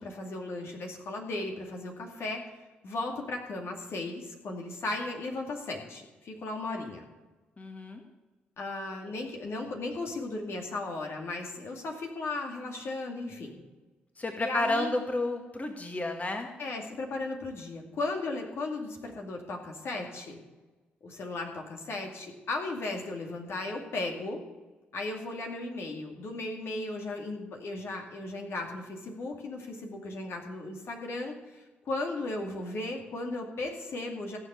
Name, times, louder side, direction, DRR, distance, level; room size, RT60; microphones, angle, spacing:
voice 1, 0.0-2.4 2.8-7.0 8.6-13.6 14.4-14.9 16.6-20.4 21.0-24.4 24.9-34.4, left 2 dB, 55° left, 1 dB, 2.4 m, -36 dB
voice 2, 7.6-8.0 14.2-16.5, left 2 dB, 30° left, 3 dB, 2.0 m, -31 dB
16.0 x 6.7 x 7.0 m, 1.2 s
hypercardioid pair, 45°, 5 cm